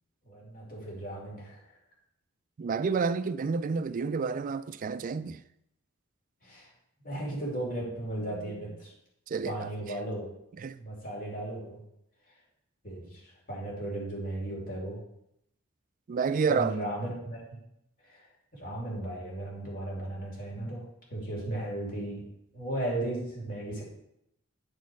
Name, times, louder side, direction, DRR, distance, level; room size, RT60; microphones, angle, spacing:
voice 1, 0.2-1.6 6.4-6.7 7.0-8.9 9.4-10.3 10.8-11.8 12.8-15.0 16.5-17.4 18.0-18.3 18.5-22.3 22.5-23.8, right 1 dB, 40° left, 2.5 m, -36 dB
voice 2, 2.6-5.4 9.3-9.7 10.6-10.8 16.1-16.9, right 5 dB, 40° right, 0.3 m, -29 dB
9.4 x 4.4 x 4.6 m
head